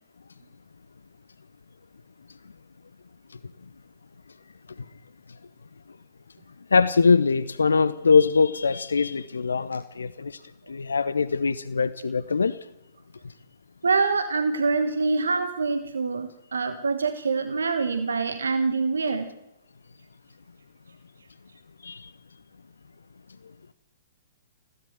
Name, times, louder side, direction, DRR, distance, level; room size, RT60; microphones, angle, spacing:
voice 1, 6.7-10.4 10.7-12.6 21.8-22.1, left 5 dB, 70° left, 17 dB, 0.7 m, -22 dB
voice 2, 13.8-19.3, right 4 dB, 70° right, 10 dB, 1.2 m, -25 dB
21.0 x 16.5 x 7.8 m, 0.88 s
figure-of-eight pair, 115°, 0 cm